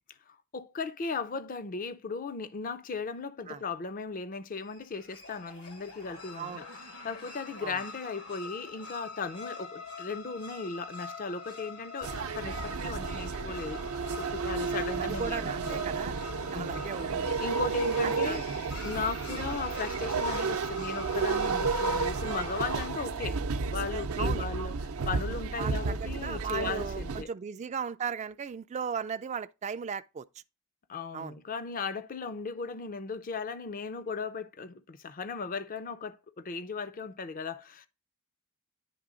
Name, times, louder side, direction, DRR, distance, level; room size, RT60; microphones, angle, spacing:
voice 1, 0.3-13.8 14.2-15.8 16.5-16.9 17.4-18.4 18.8-23.4 23.7-24.7 25.1-27.3 30.9-37.9, left 4 dB, 40° left, 0.5 m, -37 dB
sound 1, 4.6-22.9, left 4 dB, 80° left, 1.5 m, -44 dB
sound 2, 12.0-27.2, right 4 dB, 75° right, 0.6 m, -32 dB
voice 2, 15.0-17.4 18.0-18.4 24.2-24.4 25.6-30.3 31.1-31.3, right 6 dB, 30° right, 0.3 m, -37 dB
10.0 x 3.4 x 3.7 m
head